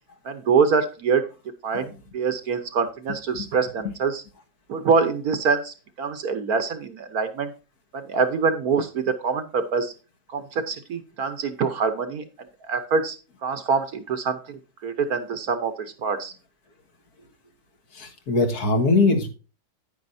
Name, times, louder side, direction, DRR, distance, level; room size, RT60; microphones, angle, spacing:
voice 1, 0.2-1.2 1.6-4.2 4.7-7.5 7.9-9.9 10.3-12.2 12.7-13.2 13.4-15.7 16.0-16.3, right 5 dB, 60° right, 9 dB, 1.3 m, -25 dB
voice 2, 18.0-19.3, left 3 dB, 55° left, 4 dB, 2.0 m, -21 dB
9.7 x 9.6 x 2.7 m, 0.32 s
omnidirectional pair, 2.0 m